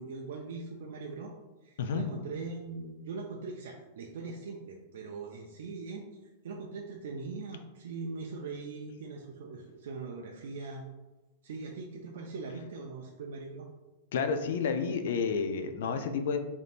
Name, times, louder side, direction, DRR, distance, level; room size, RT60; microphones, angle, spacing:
voice 1, 0.0-1.3 1.6-6.1 6.4-10.8 11.4-13.7, right 4 dB, 80° right, 0 dB, 0.3 m, -41 dB
voice 2, 14.1-16.4, left 5 dB, 75° left, 8 dB, 0.3 m, -30 dB
3.4 x 2.6 x 2.4 m, 1.1 s
supercardioid pair, 140°, 0 cm